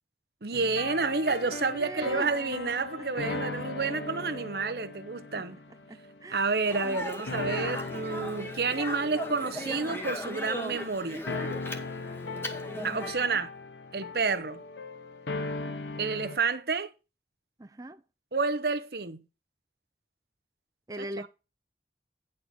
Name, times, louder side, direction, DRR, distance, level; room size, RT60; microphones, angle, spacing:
voice 1, 0.4-5.6 6.3-11.2 12.8-13.5 13.9-14.6 16.0-16.9 18.3-19.2, right 4 dB, 60° right, 0.8 m, -29 dB
sound 1, 0.5-7.0 7.3-16.4, left 3 dB, 85° left, 0.9 m, -39 dB
voice 2, 1.8-2.4 3.0-3.4 5.3-5.4 5.9-6.5 6.8-7.0 13.2-13.4 15.4-15.8 17.6-18.0 20.9-21.3, right 1 dB, 20° right, 0.4 m, -42 dB
Speech, 6.6-13.1, left 1 dB, 15° left, 1.0 m, -38 dB
9.7 x 4.4 x 5.9 m
head